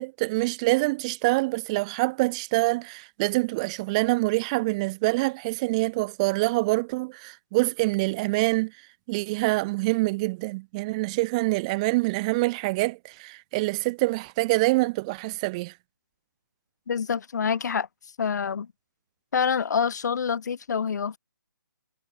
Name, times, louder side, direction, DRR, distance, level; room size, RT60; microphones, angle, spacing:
voice 1, 0.0-8.7 9.1-15.7, right 23 dB, 20° right, 0.6 m, -25 dB
voice 2, 16.9-17.9 18.2-18.7 19.3-21.2, left 6 dB, 55° left, 2.9 m, -26 dB
hypercardioid pair, 155°, 11 cm